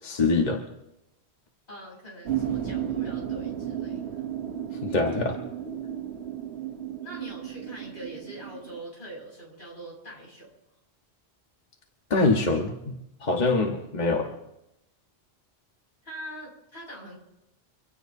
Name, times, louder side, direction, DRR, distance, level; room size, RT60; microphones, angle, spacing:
voice 1, 0.0-0.6 4.8-5.4 12.1-12.9 13.2-14.3, left 3 dB, 40° left, 1 dB, 1.4 m, -24 dB
voice 2, 1.7-4.2 7.0-10.5 16.0-17.2, right 1 dB, 75° left, -2 dB, 6.4 m, -43 dB
sound 1, 2.2-8.8, right 10 dB, 70° right, 1.2 m, -33 dB
25.5 x 16.5 x 2.7 m, 0.88 s
omnidirectional pair, 1.1 m